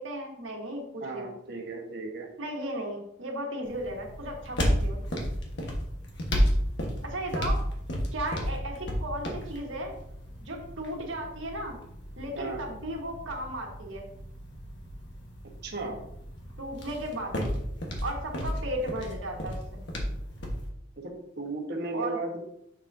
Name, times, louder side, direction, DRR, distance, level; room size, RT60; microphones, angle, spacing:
voice 1, 0.0-1.3 2.4-5.0 7.0-7.6 8.1-9.9 10.4-11.8 12.2-14.1 16.6-17.6 18.0-19.8 21.9-22.2, right 1 dB, 75° right, 0 dB, 1.6 m, -35 dB
voice 2, 1.0-2.3 12.3-12.6 15.6-16.0 21.0-22.4, right 2 dB, 55° right, 2 dB, 1.3 m, -35 dB
sound 1, 3.6-20.7, equal, 60° left, 1.4 m, -33 dB
7.2 x 6.0 x 2.7 m, 0.74 s
head